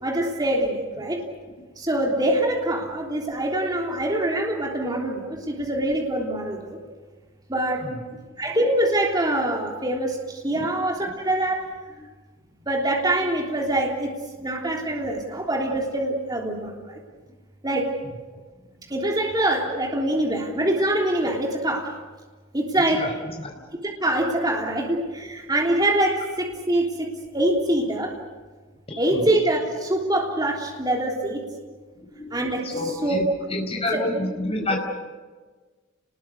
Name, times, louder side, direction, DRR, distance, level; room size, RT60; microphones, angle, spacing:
voice 1, 0.0-1.2 1.8-6.8 7.5-7.9 8.4-11.7 12.7-14.1 14.4-16.9 17.6-17.9 18.9-21.9 22.5-23.2 23.8-28.1 29.0-31.4 32.3-33.2 33.9-34.0 34.6-34.8, right 1 dB, 20° right, -1 dB, 3.4 m, -24 dB
voice 2, 28.9-29.2 32.2-32.3 32.6-34.8, left 2 dB, 30° left, 2 dB, 4.8 m, -28 dB
30.0 x 21.0 x 6.7 m, 1.4 s
head